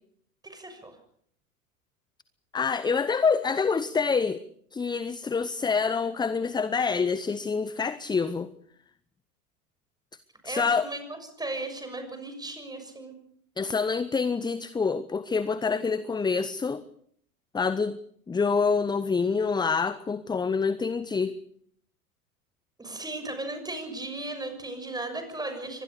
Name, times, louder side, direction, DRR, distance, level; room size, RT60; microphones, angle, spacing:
voice 1, 0.4-0.9 10.4-13.1 22.8-25.8, right 2 dB, 10° right, 6.7 m, -36 dB
voice 2, 2.5-4.4 4.7-8.5 10.4-10.9 13.6-16.8 17.5-18.0 18.3-21.4, left 5 dB, 10° left, 0.8 m, -26 dB
24.5 x 20.0 x 6.7 m
hypercardioid pair, 90°, 43 cm